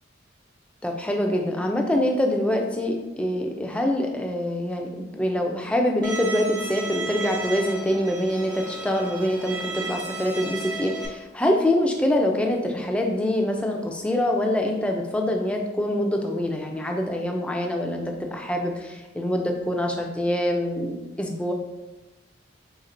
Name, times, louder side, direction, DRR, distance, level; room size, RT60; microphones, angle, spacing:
voice 1, 0.8-21.5, left 1 dB, 5° left, 1 dB, 0.3 m, -25 dB
Bowed string instrument, 6.0-11.1, right 3 dB, 65° right, 0.7 m, -34 dB
4.2 x 3.6 x 2.5 m, 1.0 s
head